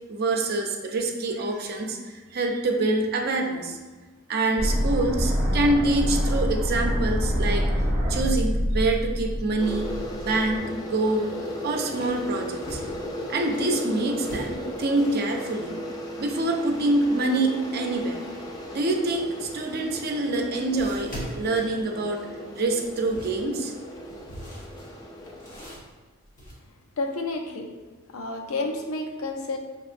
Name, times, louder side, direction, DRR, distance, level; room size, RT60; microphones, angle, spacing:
voice 1, 0.1-3.8 4.3-7.7 8.1-9.9 10.2-11.3 11.6-12.8 13.3-15.8 16.2-18.2 18.7-22.2 22.6-23.7, right 2 dB, 50° right, 3 dB, 0.5 m, -26 dB
sound 1, 4.6-10.6, equal, 15° right, 1.2 m, -26 dB
sound 2, 9.6-25.8, equal, 20° left, 0.4 m, -37 dB
sound 3, 11.4-13.8 14.2-15.3 19.6-19.7 20.8-22.3 22.8-26.5, equal, 40° left, 1.2 m, -41 dB
voice 2, 27.0-27.7 28.1-29.6, left 2 dB, 85° left, 4 dB, 0.5 m, -30 dB
5.3 x 2.9 x 2.5 m, 1.3 s
head